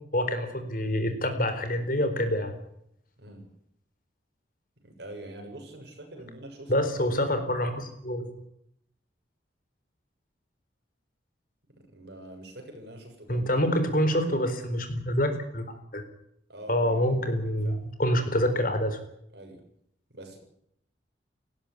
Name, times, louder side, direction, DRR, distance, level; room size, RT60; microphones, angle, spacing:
voice 1, 0.1-2.6 6.7-8.4 13.3-15.6 15.9-16.0 16.7-19.0, equal, 45° left, 8 dB, 4.1 m, -26 dB
voice 2, 4.8-6.7 11.7-13.5 16.5-17.8 19.3-19.6 20.1-20.4, right 1 dB, 60° right, 3 dB, 7.1 m, -45 dB
19.0 x 15.5 x 9.7 m, 0.72 s
head